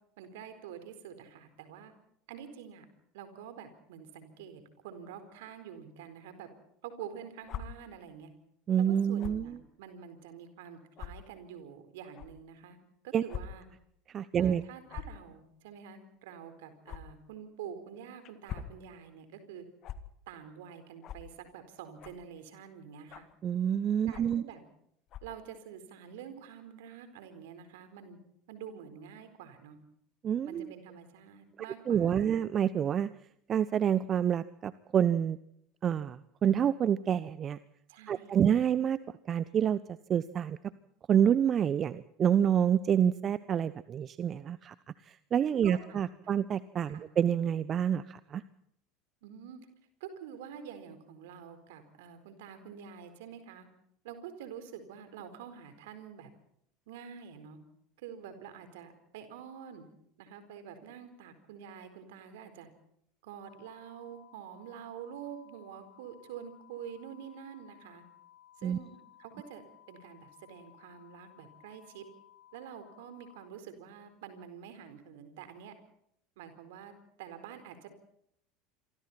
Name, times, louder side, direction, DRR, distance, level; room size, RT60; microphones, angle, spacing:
voice 1, 0.2-1.9 2.3-2.9 3.1-6.5 6.8-8.3 8.8-12.8 13.0-13.7 14.4-19.6 20.3-23.3 24.1-24.6 25.2-28.2 28.5-29.8 30.4-32.4 37.9-38.3 45.6-46.3 46.9-47.1 49.2-49.6 50.0-53.7 54.0-56.3 56.9-57.6 58.0-59.9 60.2-62.7 63.2-68.0 68.6-69.6 69.9-72.0 72.5-75.7 76.4-76.9 77.2-77.9, right 8 dB, 65° right, 9 dB, 4.3 m, -47 dB
sound 1, 7.4-7.6 9.2-9.4 10.2-10.3 11.0-11.1 12.1-12.3 13.3-13.4 13.8-13.9 14.9-15.2 16.9-17.0 18.2-18.7 19.8-20.0 21.0-21.2 22.0-22.3 23.1-23.4 24.1-24.4 25.1-25.4, left 10 dB, 45° left, 2.0 m, -41 dB
voice 2, 8.7-9.6 13.1-13.2 14.1-14.6 23.4-24.4 30.2-30.7 31.9-33.1 33.5-35.4 35.8-37.6 38.1-39.0 39.3-39.8 40.1-40.6 41.1-44.7 45.3-48.4 68.6-68.8, right 9 dB, 35° right, 16 dB, 0.9 m, -28 dB
sound 2, 63.5-73.5, left 12 dB, 70° left, 5.3 m, -59 dB
27.5 x 24.0 x 4.4 m, 0.71 s
figure-of-eight pair, 75°, 0 cm